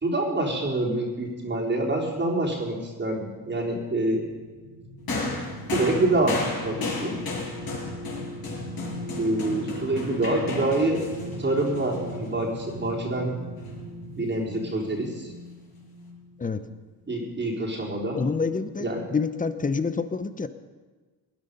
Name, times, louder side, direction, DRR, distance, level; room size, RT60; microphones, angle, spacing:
voice 1, 0.0-4.3 5.7-7.2 9.2-11.0 11.4-13.3 14.2-15.3 17.1-18.2 18.8-19.1, right 2 dB, 20° right, -2 dB, 4.0 m, -26 dB
sound 1, 4.1-16.6 17.0-17.2, equal, 75° right, 5.0 m, -39 dB
sound 2, 5.1-12.6 13.6-13.7, left 3 dB, 45° left, 6.3 m, -34 dB
voice 2, 18.2-20.5, left 4 dB, 15° left, 12 dB, 0.9 m, -27 dB
19.5 x 10.5 x 5.5 m, 1.3 s
supercardioid pair, 95°, 48 cm